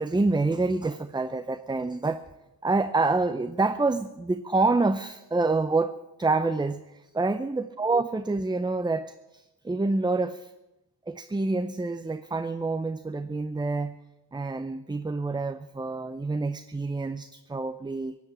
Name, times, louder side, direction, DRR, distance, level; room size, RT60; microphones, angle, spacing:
voice 1, 0.0-2.2 2.6-5.9 6.2-10.5 11.1-14.0 14.3-18.2, right 3 dB, 10° right, 10 dB, 0.5 m, -27 dB
17.0 x 8.3 x 8.7 m, 0.99 s
cardioid pair, 90°, 42 cm